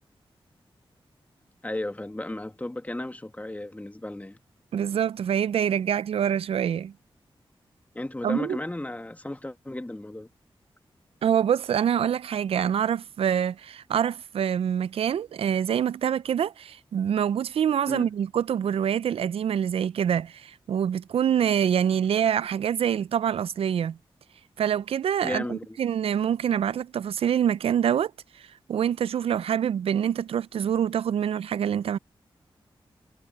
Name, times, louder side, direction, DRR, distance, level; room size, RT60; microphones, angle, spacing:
voice 1, 1.6-4.4 7.9-10.3 17.9-18.1 25.2-25.8, left 1 dB, 15° left, 1.5 m, -34 dB
voice 2, 4.7-6.9 8.2-8.6 11.2-24.0 24.6-32.0, right 9 dB, 85° right, 0.4 m, -25 dB
cardioid pair, 70°, 10 cm